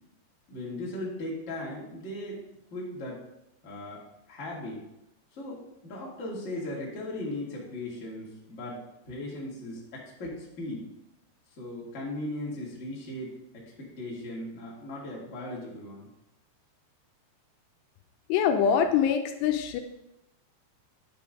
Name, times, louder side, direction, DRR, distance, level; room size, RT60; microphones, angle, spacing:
voice 1, 0.5-2.4 2.7-3.2 3.6-4.8 5.3-10.8 11.6-16.1, left 1 dB, 30° left, -5 dB, 1.5 m, -38 dB
voice 2, 18.3-19.8, left 8 dB, 85° left, 6 dB, 2.7 m, -24 dB
9.5 x 6.7 x 3.7 m, 0.87 s
omnidirectional pair, 4.9 m